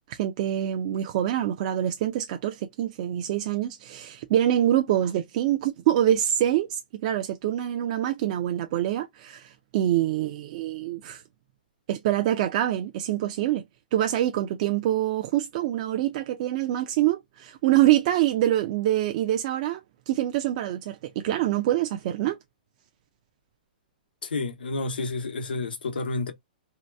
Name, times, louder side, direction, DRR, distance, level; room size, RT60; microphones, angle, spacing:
voice 1, 0.1-11.2 11.9-13.6 13.9-19.8 20.1-22.4, right 12 dB, 45° right, 0.4 m, -25 dB
voice 2, 24.2-26.3, left 3 dB, 85° left, 0.8 m, -30 dB
2.8 x 2.2 x 3.2 m
hypercardioid pair, 135°, 5 cm